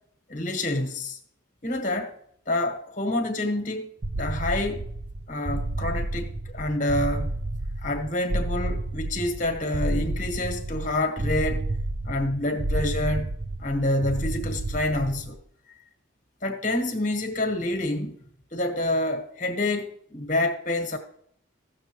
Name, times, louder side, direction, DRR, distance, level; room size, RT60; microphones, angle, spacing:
voice 1, 0.3-1.2 1.6-2.1 2.5-3.9 4.1-4.8 5.3-7.3 7.8-11.6 12.0-13.3 13.6-15.4 16.4-18.1 18.5-21.0, left 1 dB, 40° left, 1.2 m, -27 dB
sound 1, 4.0-15.4, right 1 dB, 30° right, 0.4 m, -30 dB
15.5 x 6.8 x 3.0 m
head